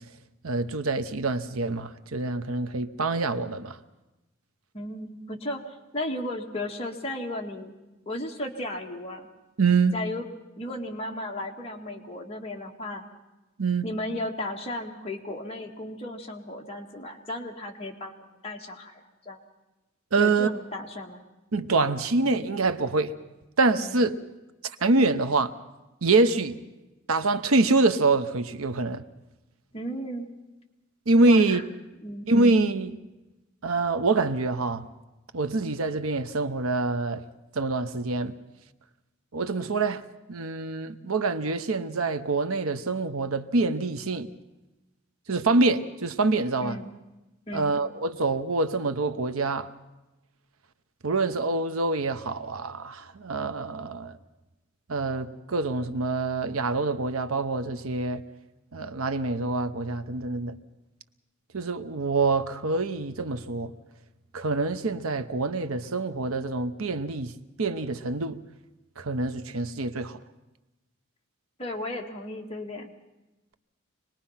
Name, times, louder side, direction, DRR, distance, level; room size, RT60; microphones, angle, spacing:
voice 1, 0.4-3.8 9.6-10.0 13.6-13.9 20.1-20.5 21.5-23.1 23.6-24.2 24.6-25.6 26.0-26.6 27.1-29.0 31.1-31.6 32.3-33.0 33.6-34.9 35.3-37.2 37.5-38.3 39.3-40.0 40.3-44.3 45.3-46.8 47.5-49.7 51.0-54.2 54.9-58.2 58.7-60.6 61.5-63.7 64.3-67.3 67.6-68.4 69.0-70.2, right 3 dB, 85° right, 0.9 m, -25 dB
voice 2, 4.7-7.7 8.1-9.3 9.9-10.3 10.6-13.0 13.8-19.4 20.2-21.2 23.8-24.0 29.7-30.3 31.3-31.6 32.0-32.3 46.6-46.9 47.5-47.7 71.6-72.9, left 1 dB, 30° left, 1.9 m, -35 dB
25.5 x 20.0 x 5.8 m
head